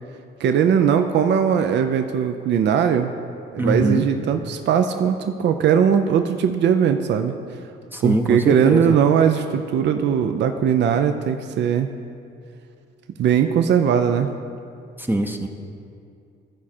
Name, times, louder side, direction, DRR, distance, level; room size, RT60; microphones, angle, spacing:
voice 1, 0.4-3.1 3.5-7.3 8.0-11.9 13.2-14.3, right 8 dB, 65° right, 7 dB, 0.5 m, -19 dB
voice 2, 3.6-4.1 7.9-9.0 15.0-15.5, right 1 dB, 10° right, 3 dB, 0.6 m, -22 dB
14.5 x 4.8 x 4.3 m, 2.4 s
cardioid pair, 90°, 20 cm